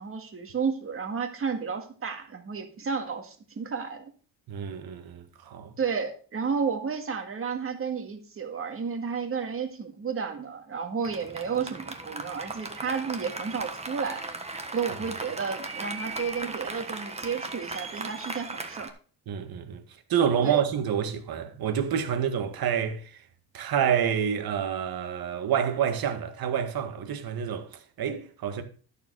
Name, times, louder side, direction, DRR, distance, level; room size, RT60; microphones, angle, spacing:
voice 1, 0.0-4.1 5.8-14.2 14.7-18.9 20.4-20.6, right 6 dB, 30° right, 1.9 m, -32 dB
voice 2, 4.5-5.8 19.3-19.8 20.1-23.2 23.5-28.6, right 8 dB, 55° right, 1.7 m, -28 dB
Applause, 11.0-18.9, right 3 dB, 15° right, 1.3 m, -37 dB
12.0 x 7.0 x 4.6 m
cardioid pair, 155°, 42 cm